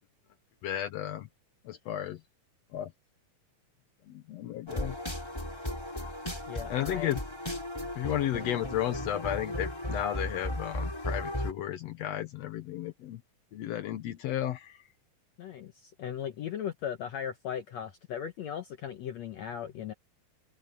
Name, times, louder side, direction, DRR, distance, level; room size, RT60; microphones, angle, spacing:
voice 1, 0.6-1.3 1.6-2.2 2.7-2.9 4.1-5.0 6.7-7.2 7.9-13.2 13.5-14.8, left 12 dB, 85° left, 1.5 m, -33 dB
sound 1, 4.7-11.5, left 1 dB, 5° left, 4.5 m, -36 dB
voice 2, 6.5-7.2 15.4-19.9, left 9 dB, 65° left, 1.8 m, -37 dB
omnidirectional pair, 4.2 m